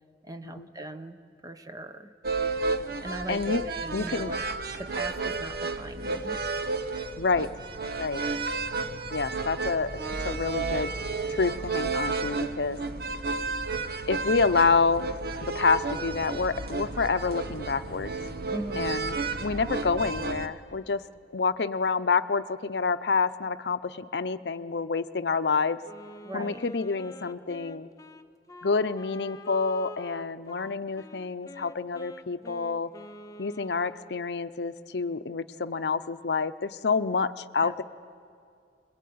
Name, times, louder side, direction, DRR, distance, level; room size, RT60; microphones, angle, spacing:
voice 1, 0.2-2.1 2.7-4.4 4.8-6.4 18.5-19.0 26.2-26.6 37.6-37.7, right 2 dB, 20° right, 9 dB, 0.9 m, -40 dB
sound 1, 2.2-20.5, right 3 dB, 60° right, 1.0 m, -32 dB
voice 2, 3.3-3.6 3.9-4.3 7.2-7.5 8.0-8.2 9.1-10.9 11.3-12.8 14.1-15.1 15.4-18.1 18.8-19.1 19.4-21.0 21.3-25.8 26.3-27.9 28.6-32.9 33.4-37.8, left 4 dB, 70° left, 12 dB, 0.7 m, -28 dB
Wind instrument woodwind instrument, 25.8-34.3, left 1 dB, 20° left, 0.7 m, -46 dB
24.5 x 21.5 x 9.4 m, 2.3 s
head